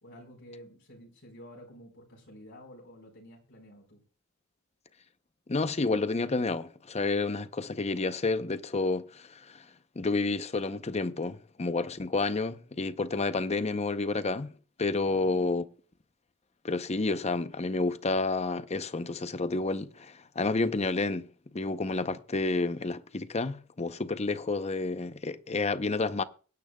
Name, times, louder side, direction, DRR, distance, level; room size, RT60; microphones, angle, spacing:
voice 1, 0.0-4.0 15.0-15.5, equal, 60° left, 4.5 m, -51 dB
voice 2, 5.5-9.7 10.0-14.5 14.8-15.6 16.6-26.2, left 3 dB, 30° left, 0.7 m, -30 dB
23.5 x 10.5 x 2.3 m
head